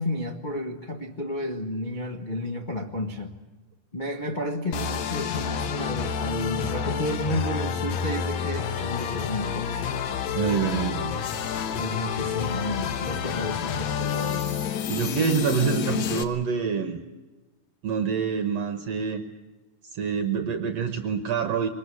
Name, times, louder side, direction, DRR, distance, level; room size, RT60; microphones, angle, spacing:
voice 1, 0.0-3.3 3.9-9.9 11.8-14.7, left 1 dB, 25° left, 2 dB, 0.9 m, -32 dB
sound 1, 4.7-16.2, left 7 dB, 70° left, 2.5 m, -29 dB
voice 2, 10.4-11.2 14.9-17.0 17.8-19.2 19.8-21.7, right 6 dB, 65° right, 8 dB, 2.1 m, -26 dB
23.5 x 20.5 x 8.5 m, 1.2 s
omnidirectional pair, 3.5 m